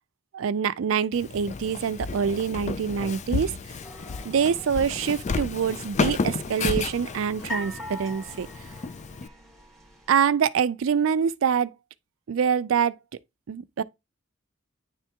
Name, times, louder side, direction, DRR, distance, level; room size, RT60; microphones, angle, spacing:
voice 1, 0.3-3.5 4.2-8.5 10.1-11.7 12.3-12.9 13.5-13.8, right 7 dB, 90° right, 0.4 m, -25 dB
Walk footsteps, 1.1-9.3, left 4 dB, 35° left, 0.4 m, -32 dB
sound 1, 3.8-10.2, left 1 dB, ahead, 1.6 m, -43 dB
9.8 x 3.4 x 2.8 m
head